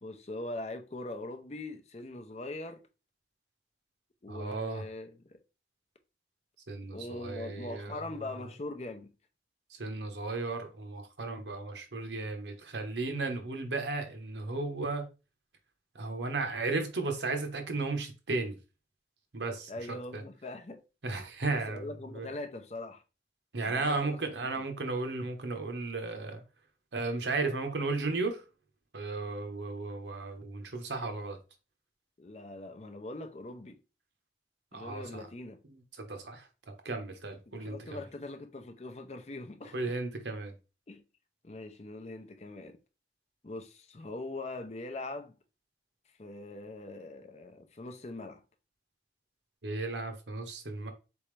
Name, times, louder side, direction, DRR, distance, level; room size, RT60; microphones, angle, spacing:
voice 1, 0.0-2.8 4.2-5.4 6.9-9.1 19.7-20.8 21.5-23.0 23.6-24.7 32.2-33.8 34.7-35.6 37.5-40.0 40.9-41.0 41.4-42.8 43.4-45.3 46.2-48.4, left 2 dB, 35° left, 0.5 m, -42 dB
voice 2, 4.3-4.8 6.7-8.0 9.8-15.1 15.9-18.6 19.3-19.7 20.1-20.2 21.0-21.9 22.1-22.3 23.5-26.4 26.9-28.4 28.9-31.4 34.7-35.2 36.0-36.4 36.8-38.0 39.7-40.5 49.6-50.9, right 3 dB, 80° right, 0.9 m, -34 dB
4.1 x 3.5 x 3.2 m
head